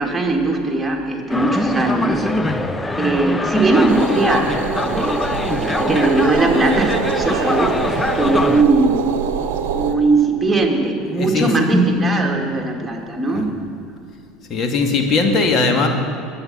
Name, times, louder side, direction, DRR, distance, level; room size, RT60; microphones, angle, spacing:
voice 1, 0.0-2.3 2.9-5.3 5.6-9.0 9.7-13.5, right 2 dB, 10° right, 0 dB, 2.7 m, -19 dB
sound 1, 1.3-8.6, left 2 dB, 15° left, 0.8 m, -23 dB
voice 2, 2.4-2.7 11.2-11.5 13.3-13.5 14.5-15.9, left 4 dB, 40° left, 4 dB, 2.2 m, -19 dB
sound 2, 3.9-9.9, right 8 dB, 70° right, 0.9 m, -25 dB
22.5 x 8.7 x 5.7 m, 2.6 s
hypercardioid pair, 70°, 0 cm